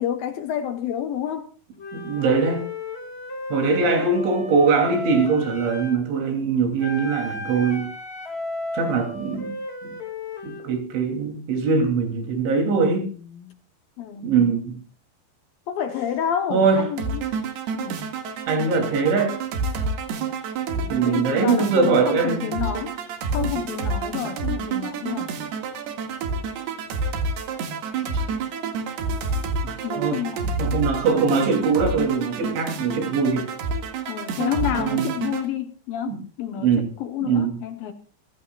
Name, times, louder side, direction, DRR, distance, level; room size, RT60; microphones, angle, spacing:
voice 1, 0.0-1.5 7.6-7.7 13.2-13.6 14.0-14.6 15.7-17.3 17.7-18.0 21.0-22.9 23.3-25.3 29.8-30.7 34.1-37.9, left 9 dB, 70° left, 2.3 m, -29 dB
Wind instrument woodwind instrument, 1.8-6.0 6.8-10.7, left 2 dB, 35° left, 0.9 m, -34 dB
voice 2, 1.9-2.6 3.5-7.9 8.7-9.6 9.8-10.0 10.4-13.1 14.2-14.8 16.5-16.8 18.5-19.4 20.9-22.5 28.1-28.2 29.6-30.2 30.6-33.5 34.8-35.1 36.1-36.2 36.6-36.9 37.2-37.6, right 4 dB, 85° right, 5.4 m, -22 dB
sound 1, 17.0-35.5, right 4 dB, 65° right, 3.7 m, -28 dB
27.5 x 15.5 x 2.4 m
omnidirectional pair, 5.2 m